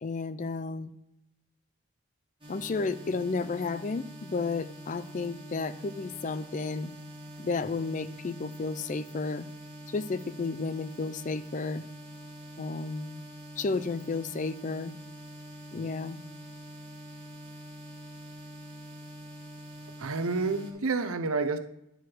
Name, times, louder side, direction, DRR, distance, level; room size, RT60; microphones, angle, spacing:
voice 1, 0.0-0.9 2.5-6.9 7.4-9.5 9.9-11.8 12.6-13.2 13.6-14.9 15.7-16.2, left 4 dB, 35° left, 13 dB, 0.4 m, -32 dB
sound 1, 2.4-20.7, equal, 20° right, 1.9 m, -45 dB
voice 2, 20.0-21.6, right 4 dB, 75° right, 9 dB, 0.7 m, -29 dB
10.5 x 4.7 x 6.2 m, 0.83 s
head